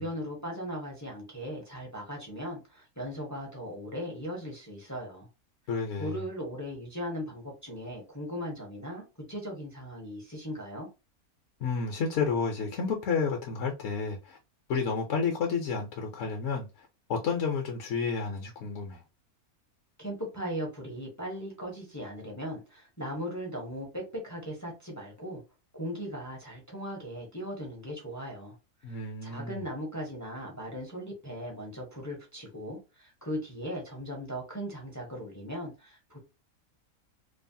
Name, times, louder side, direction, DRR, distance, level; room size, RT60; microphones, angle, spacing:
voice 1, 0.0-5.3 6.0-10.9 20.0-25.4 25.7-28.6 28.9-36.2, equal, 20° left, 0.4 m, -38 dB
voice 2, 5.7-6.2 11.6-14.4 14.7-19.0 28.8-29.6, left 5 dB, 65° left, 0.8 m, -31 dB
3.1 x 2.0 x 2.6 m
omnidirectional pair, 1.5 m